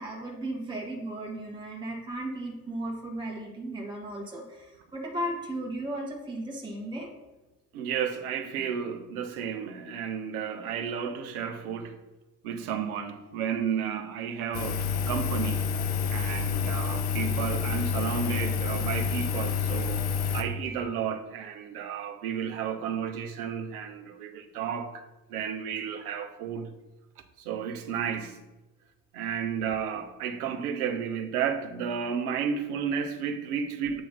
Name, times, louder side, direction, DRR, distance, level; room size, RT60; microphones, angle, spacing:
voice 1, 0.0-7.1, right 1 dB, 10° right, 1.3 m, -35 dB
voice 2, 7.7-12.0 12.4-15.7 16.1-20.0 20.3-26.7 27.4-28.4 29.1-34.0, right 7 dB, 60° right, 0.8 m, -32 dB
Engine, 14.5-20.4, left 6 dB, 60° left, 0.8 m, -28 dB
7.7 x 3.1 x 5.5 m
figure-of-eight pair, 60°, 48 cm